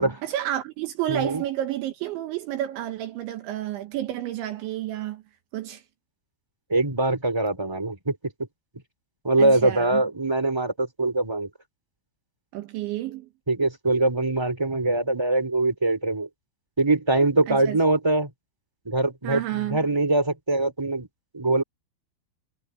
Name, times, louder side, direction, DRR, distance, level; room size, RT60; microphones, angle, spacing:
voice 1, 0.0-5.2 5.5-5.8 9.4-10.0 12.5-13.3 17.5-17.8 19.2-19.8, right 13 dB, 75° right, 3.5 m, -30 dB
voice 2, 1.1-1.4 6.7-8.1 9.2-11.5 13.5-16.3 16.8-18.3 18.8-21.1 21.3-21.6, right 2 dB, 5° right, 3.1 m, -23 dB
omnidirectional pair, 5.7 m